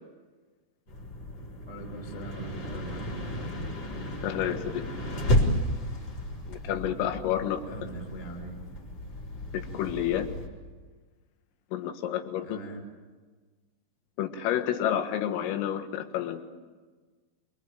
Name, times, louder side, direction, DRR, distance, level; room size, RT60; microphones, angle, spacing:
sound 1, 0.9-10.5, left 1 dB, 35° left, 5.1 m, -32 dB
voice 1, 1.6-3.2 7.6-8.6 12.4-12.9, right 2 dB, 10° left, 3 dB, 2.3 m, -41 dB
voice 2, 4.2-4.8 6.5-7.6 9.5-10.3 11.7-12.6 14.2-16.4, left 10 dB, 90° left, 8 dB, 4.2 m, -30 dB
26.5 x 23.5 x 8.8 m, 1.4 s
omnidirectional pair, 5.8 m